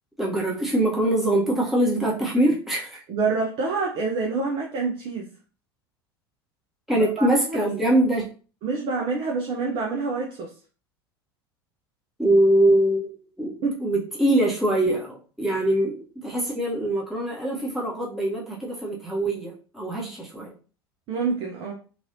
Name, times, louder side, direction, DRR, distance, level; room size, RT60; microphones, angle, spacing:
voice 1, 0.2-3.0 6.9-8.2 12.2-13.1 13.4-13.5 13.8-20.5, right 1 dB, ahead, -4 dB, 1.0 m, -23 dB
voice 2, 3.1-5.3 6.9-7.7 8.6-10.5 13.6-13.9 20.0-20.1 21.1-21.7, right 4 dB, 45° right, 1 dB, 0.7 m, -27 dB
3.1 x 2.5 x 2.7 m, 0.38 s
figure-of-eight pair, 75°, 13 cm